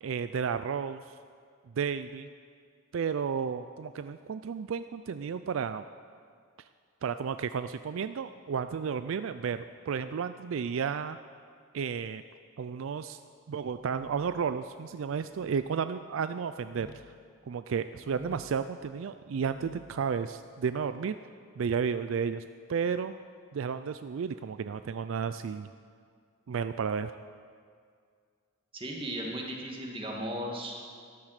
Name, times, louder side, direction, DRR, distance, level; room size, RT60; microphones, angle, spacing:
voice 1, 0.0-1.0 1.8-2.3 2.9-5.8 7.0-11.2 11.7-12.2 12.6-13.2 13.5-16.9 17.5-21.2 21.6-22.4 22.7-23.1 23.5-25.7 26.5-27.1, right 6 dB, 70° right, 11 dB, 0.4 m, -32 dB
sound 1, 13.5-14.5 15.2-15.6 16.6-17.0 17.9-18.6 19.3-20.0, left 1 dB, 15° left, 1.1 m, -51 dB
voice 2, 28.7-30.7, equal, 25° right, -1 dB, 2.0 m, -36 dB
13.5 x 10.5 x 6.5 m, 2.1 s
head